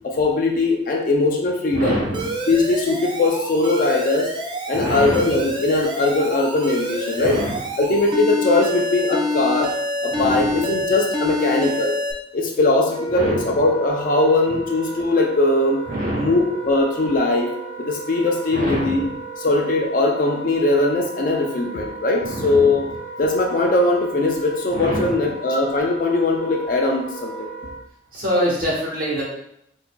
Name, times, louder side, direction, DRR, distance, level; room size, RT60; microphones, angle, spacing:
voice 1, 0.0-2.0 2.5-4.3 4.7-7.4 7.8-9.7 10.0-12.0 12.3-15.8 16.1-17.5 17.8-19.1 19.4-22.9 23.2-27.5, left 2 dB, 45° left, 1 dB, 0.4 m, -20 dB
voice 2, 1.7-2.3 4.7-5.4 7.2-7.6 10.1-10.7 13.1-13.6 15.9-16.4 18.5-19.1 22.2-22.8 24.7-25.2 28.1-29.2, equal, 50° right, -5 dB, 1.2 m, -25 dB
Alarm, 2.1-12.1, left 1 dB, 25° right, 0.4 m, -26 dB
Wind instrument woodwind instrument, 12.8-27.8, right 3 dB, 75° left, 1.0 m, -35 dB
4.6 x 2.6 x 2.2 m, 0.77 s
head